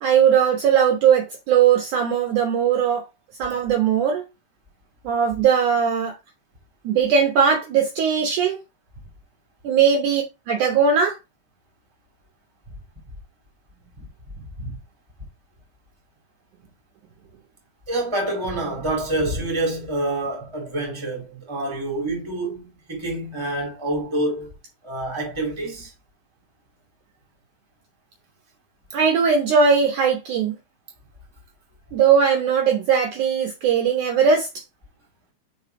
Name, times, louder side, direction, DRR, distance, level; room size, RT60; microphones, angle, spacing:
voice 1, 0.0-3.0 3.4-4.2 5.0-6.2 6.8-8.6 9.6-11.2 28.9-30.5 31.9-34.5, right 7 dB, 70° right, 2.1 m, -19 dB
voice 2, 14.3-14.8 17.9-24.5 24.8-25.9, right 2 dB, 10° right, 2.0 m, -27 dB
5.5 x 4.6 x 4.6 m
omnidirectional pair, 4.3 m